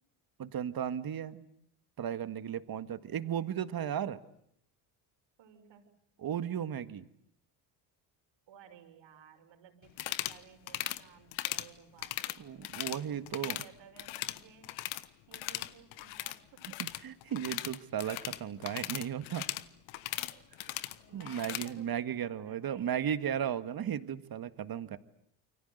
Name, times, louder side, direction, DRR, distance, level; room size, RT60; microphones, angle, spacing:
voice 1, 0.4-1.5 2.0-4.2 6.2-7.1 12.4-13.6 16.8-19.5 20.7-20.8 21.1-25.0, right 9 dB, 45° right, 11 dB, 1.9 m, -35 dB
voice 2, 5.4-5.9 8.5-12.4 13.0-14.7 15.3-16.6 20.0-23.2, right 8 dB, 65° right, 5 dB, 6.1 m, -57 dB
sound 1, 9.9-10.4 10.7-11.0 11.3-11.7 12.0-13.0 13.3-13.7 14.0-15.1 15.3-21.7, left 16 dB, 75° left, 1.3 m, -38 dB
28.5 x 24.5 x 8.1 m, 0.71 s
supercardioid pair, 80°, 48 cm